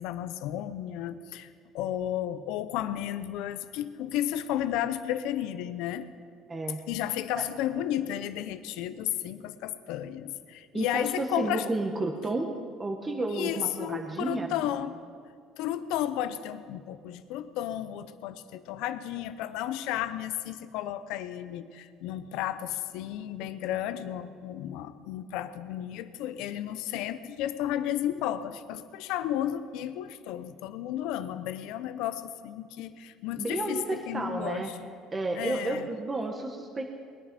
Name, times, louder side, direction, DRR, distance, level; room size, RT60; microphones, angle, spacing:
voice 1, 0.0-1.5 1.7-6.1 6.9-11.7 13.3-15.0 15.6-34.8 35.3-35.9, left 11 dB, 80° left, 12 dB, 0.7 m, -33 dB
voice 2, 6.5-6.8 7.4-7.5 10.7-12.5 12.8-14.5 33.4-34.7 35.1-36.8, right 2 dB, 25° right, 3 dB, 1.2 m, -31 dB
21.0 x 10.0 x 5.2 m, 2.2 s
supercardioid pair, 100°, 0 cm